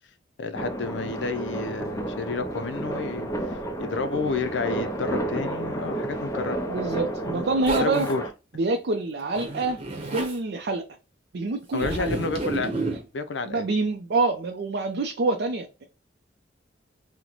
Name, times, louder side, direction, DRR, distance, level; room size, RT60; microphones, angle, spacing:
voice 1, 0.4-6.6 7.2-7.5 7.8-8.2 11.7-12.7 13.1-13.7, left 4 dB, 75° left, 0.5 m, -30 dB
sound 1, 0.5-8.3, right 1 dB, 15° left, 0.5 m, -31 dB
voice 2, 6.7-8.1 8.6-9.8 10.1-10.8 11.3-12.1 13.5-15.8, right 3 dB, 60° right, 0.4 m, -26 dB
Zipper (clothing), 7.7-8.1 9.3-10.4 11.8-13.0, right 2 dB, 30° right, 0.9 m, -30 dB
3.0 x 2.1 x 3.8 m
head